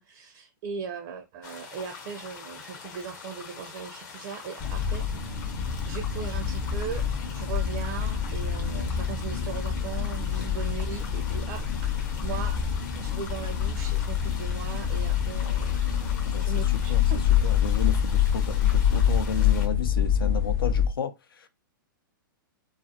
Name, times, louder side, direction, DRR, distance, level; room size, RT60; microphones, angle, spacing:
voice 1, 0.0-5.1 5.9-11.9 12.2-12.7 13.0-17.2, right 7 dB, 40° right, 0.4 m, -38 dB
sound 1, 1.4-19.7, left 6 dB, 55° left, 0.9 m, -44 dB
sound 2, 4.6-20.9, left 8 dB, 30° left, 0.4 m, -26 dB
voice 2, 16.2-17.0 17.4-21.5, left 6 dB, 85° left, 0.5 m, -33 dB
2.3 x 2.0 x 2.7 m
hypercardioid pair, 130°, 12 cm